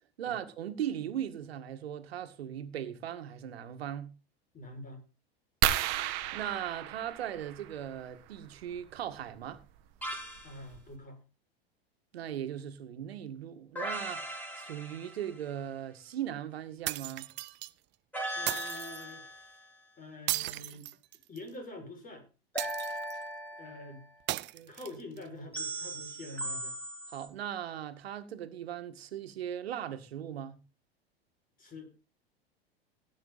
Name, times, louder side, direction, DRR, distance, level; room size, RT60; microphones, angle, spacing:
voice 1, 0.2-4.1 6.3-9.6 12.1-14.3 14.6-17.3 24.5-24.7 27.1-30.6, right 10 dB, 75° right, 1.9 m, -38 dB
voice 2, 4.5-5.0 10.4-11.2 18.3-19.6 20.0-20.9 21.3-22.3 23.6-24.1 24.7-26.7 31.6-31.9, left 2 dB, 25° left, 6.0 m, -46 dB
sound 1, 5.6-8.0 9.6-9.8 10.4-10.5 10.7-11.0, right 13 dB, 50° right, 1.4 m, -32 dB
sound 2, 10.0-10.6 13.8-15.5 18.1-19.6 22.5-24.0 25.5-27.3, right 1 dB, 5° left, 4.5 m, -38 dB
sound 3, 16.9-17.7 18.5-19.0 20.3-21.5 22.6-23.2 24.3-25.2, right 18 dB, 35° right, 0.6 m, -36 dB
17.5 x 9.0 x 4.1 m
hypercardioid pair, 95°, 31 cm